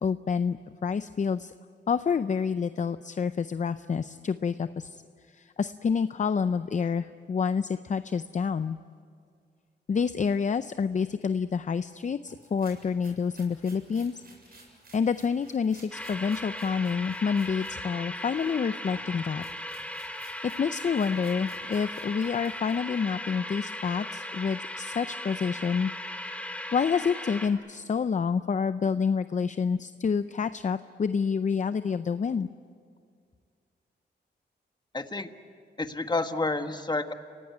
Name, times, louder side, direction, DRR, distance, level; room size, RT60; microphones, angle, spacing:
voice 1, 0.0-1.5 1.9-5.0 5.3-8.8 9.9-14.2 14.5-19.4 20.4-25.9 26.5-32.5, left 6 dB, 40° left, 12 dB, 0.6 m, -28 dB
sound 1, 12.3-17.8 18.1-23.1, right 2 dB, 55° right, 7.5 m, -55 dB
sound 2, 15.9-27.5, left 1 dB, 5° left, 2.4 m, -38 dB
voice 2, 34.9-35.3 35.8-37.1, left 2 dB, 25° left, 8 dB, 1.4 m, -29 dB
29.5 x 17.5 x 9.4 m, 2.2 s
cardioid pair, 90°, 18 cm